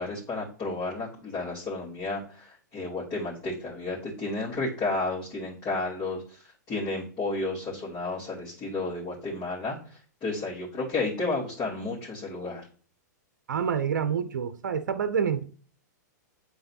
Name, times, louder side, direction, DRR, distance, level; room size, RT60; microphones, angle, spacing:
voice 1, 0.0-6.4 6.7-9.8 10.2-12.7, left 3 dB, 30° left, 2.7 m, -32 dB
voice 2, 13.5-15.4, right 7 dB, 75° right, 0.6 m, -27 dB
8.7 x 4.0 x 2.8 m
hypercardioid pair, 110°, 10 cm